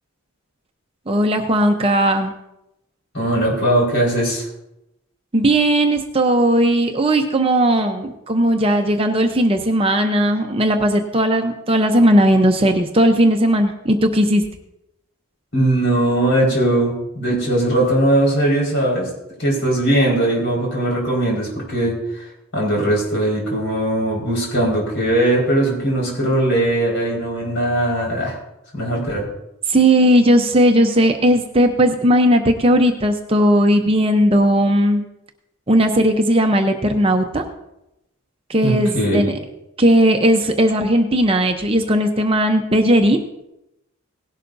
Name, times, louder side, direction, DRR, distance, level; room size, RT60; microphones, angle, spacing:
voice 1, 1.1-2.3 5.3-14.4 29.7-35.0 35.7-37.5 38.5-39.3 39.8-43.2, right 1 dB, 25° right, 5 dB, 0.7 m, -16 dB
voice 2, 3.1-4.4 15.5-19.1 19.4-22.2 22.5-28.3 28.7-29.2 38.6-39.4, right 1 dB, 50° left, -3 dB, 4.8 m, -19 dB
18.0 x 11.5 x 2.7 m, 0.88 s
head